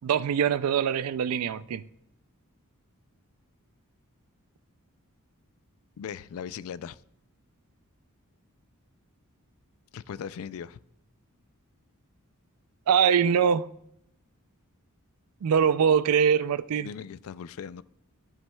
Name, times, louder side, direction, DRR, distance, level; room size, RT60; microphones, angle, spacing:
voice 1, 0.0-1.8 12.9-13.7 15.4-16.9, right 7 dB, 80° right, 16 dB, 0.4 m, -23 dB
voice 2, 6.0-7.0 9.9-10.8 16.7-17.8, left 7 dB, 70° left, 18 dB, 0.3 m, -39 dB
12.5 x 7.2 x 2.3 m, 0.75 s
head